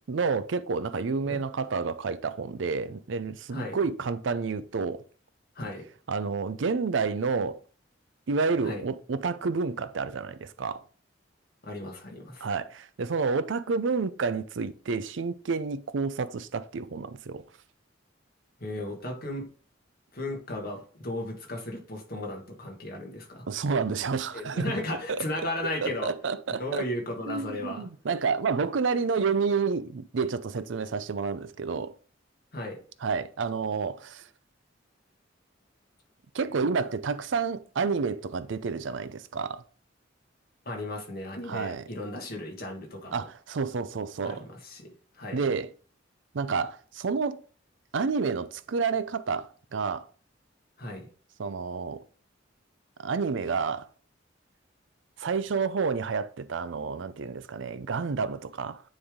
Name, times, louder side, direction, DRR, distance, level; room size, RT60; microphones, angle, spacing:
voice 1, 0.1-5.0 6.1-7.6 8.3-10.8 12.4-17.4 23.5-24.7 25.1-25.2 25.8-26.9 27.3-31.9 33.0-34.2 36.3-39.6 41.5-41.8 43.1-44.5 45.3-45.7 46.3-47.4 47.9-50.1 51.4-52.0 53.0-53.9 55.2-58.8, right 5 dB, 70° right, 0.5 m, -29 dB
voice 2, 5.5-5.9 8.6-8.8 11.6-12.5 18.6-19.5 20.1-23.4 24.3-26.1 26.6-27.9 32.5-32.8 40.6-43.3 44.2-45.4 50.8-51.1, left 1 dB, 50° left, 1.7 m, -35 dB
9.5 x 3.4 x 3.7 m
head